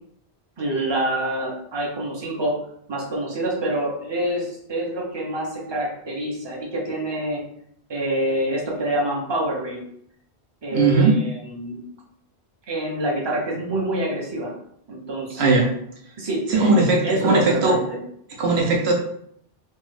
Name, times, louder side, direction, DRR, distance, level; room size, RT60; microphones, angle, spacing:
voice 1, 0.6-2.5 2.9-7.4 7.9-9.8 10.6-11.8 12.7-14.5 14.9-15.6 16.2-16.7 17.0-18.0, right 1 dB, 30° right, -2 dB, 0.7 m, -26 dB
voice 2, 10.7-11.1 15.4-15.7 16.5-17.8 18.4-18.9, right 3 dB, 80° right, 0 dB, 1.0 m, -18 dB
3.1 x 2.3 x 3.1 m, 0.69 s
omnidirectional pair, 1.1 m